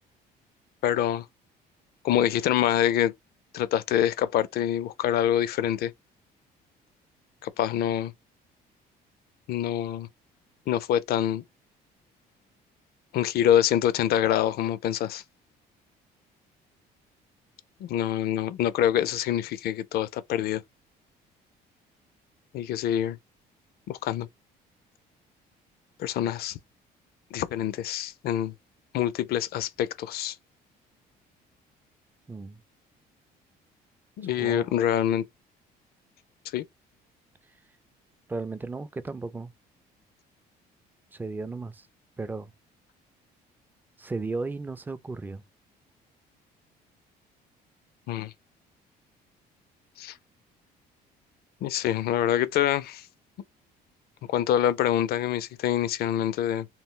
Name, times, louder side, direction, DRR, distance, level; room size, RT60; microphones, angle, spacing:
voice 1, 0.8-1.2 2.0-3.1 3.5-5.9 7.4-8.1 9.5-10.1 10.7-11.4 13.1-15.2 17.8-20.6 22.5-23.2 23.9-24.3 26.0-26.6 27.3-28.5 28.9-30.4 34.2-35.2 36.5-36.6 48.1-48.3 50.0-50.2 51.6-53.1 54.3-56.7, left 11 dB, 65° left, 0.4 m, -25 dB
voice 2, 32.3-32.6 34.2-34.8 38.3-39.5 41.1-41.9 42.2-42.5 44.0-45.4, right 3 dB, 10° right, 0.3 m, -35 dB
2.3 x 2.0 x 3.7 m
cardioid pair, 110°, 17 cm